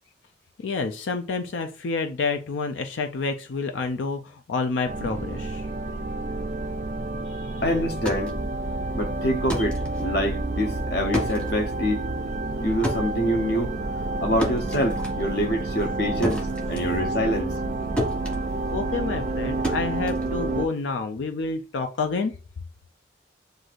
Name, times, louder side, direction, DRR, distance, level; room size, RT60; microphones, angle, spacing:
voice 1, 0.6-5.7 7.3-7.6 18.7-22.3, left 4 dB, 90° left, 0.4 m, -29 dB
sound 1, 4.9-20.7, right 2 dB, 40° right, 0.3 m, -29 dB
voice 2, 7.6-8.3 8.9-12.0 12.6-13.7 14.2-17.5, equal, 55° left, 0.8 m, -26 dB
sound 2, 7.8-17.7 18.0-20.9, equal, 5° left, 1.0 m, -33 dB
7.7 x 2.6 x 2.5 m
head